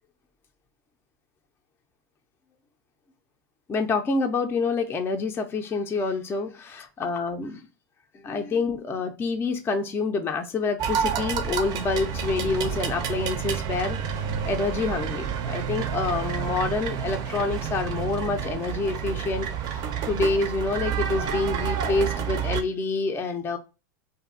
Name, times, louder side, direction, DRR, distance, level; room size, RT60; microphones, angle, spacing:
voice 1, 3.7-7.6 8.1-23.6, left 4 dB, 20° left, 0.4 m, -27 dB
sound 1, 10.8-22.6, right 8 dB, 40° right, 0.4 m, -29 dB
2.6 x 2.4 x 2.3 m
hypercardioid pair, 110°, 10 cm